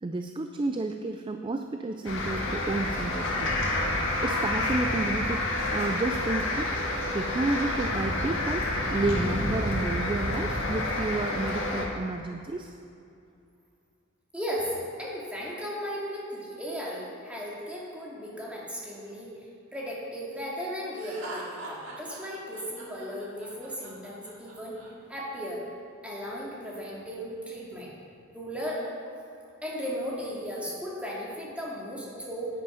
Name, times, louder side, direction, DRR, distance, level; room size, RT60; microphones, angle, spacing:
voice 1, 0.0-3.5 4.2-5.5 5.7-6.9 7.1-12.7, right 2 dB, 25° right, 6 dB, 0.4 m, -31 dB
sound 1, 2.0-11.9, left 1 dB, 70° left, 1.8 m, -29 dB
voice 2, 14.3-19.3 19.7-25.6 26.0-27.9 28.3-28.9 29.6-32.5, equal, 5° right, -5 dB, 2.3 m, -36 dB
Laughter, 21.0-24.9, right 2 dB, 70° right, 2.2 m, -42 dB
10.5 x 9.4 x 5.0 m, 2.5 s
head